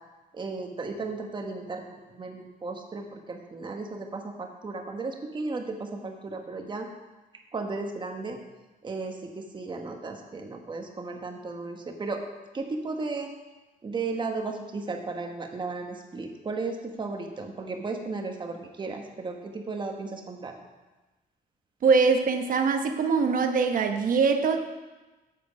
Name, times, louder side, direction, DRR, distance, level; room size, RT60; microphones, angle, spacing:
voice 1, 0.3-6.9 7.5-8.4 8.8-12.2 12.5-13.3 13.8-20.5, right 3 dB, 30° right, 3 dB, 1.2 m, -35 dB
voice 2, 21.8-24.6, right 5 dB, 60° right, 6 dB, 1.0 m, -23 dB
8.9 x 7.7 x 5.2 m, 1.1 s
wide cardioid pair, 150°, 16 cm